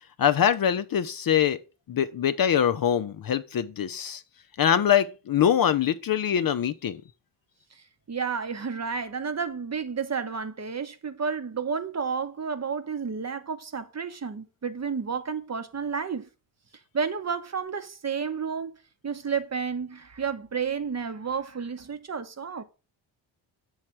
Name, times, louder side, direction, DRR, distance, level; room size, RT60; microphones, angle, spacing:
voice 1, 0.2-1.6 1.9-4.2 4.6-7.0, left 9 dB, 45° left, 0.5 m, -23 dB
voice 2, 7.7-16.3 16.9-18.8 19.0-22.6, right 6 dB, 35° right, 0.8 m, -31 dB
7.1 x 3.2 x 5.8 m
cardioid pair, 60°, 49 cm